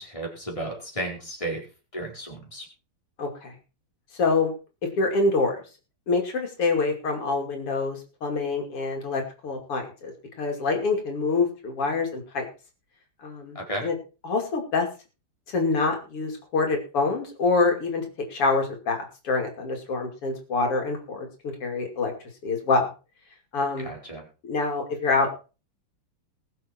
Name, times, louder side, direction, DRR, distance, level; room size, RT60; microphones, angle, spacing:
voice 1, 0.0-1.6 1.9-2.7 13.5-13.9 23.8-24.3, right 1 dB, 15° left, 0 dB, 4.3 m, -33 dB
voice 2, 3.2-3.5 4.1-4.5 5.0-5.6 6.1-10.1 10.4-12.5 13.2-13.6 13.8-13.9 14.2-14.9 15.5-18.0 18.3-22.1 22.4-22.9 23.5-23.9 24.4-25.3, left 3 dB, 85° left, 3 dB, 3.6 m, -26 dB
20.5 x 7.6 x 4.5 m, 0.34 s
omnidirectional pair, 2.4 m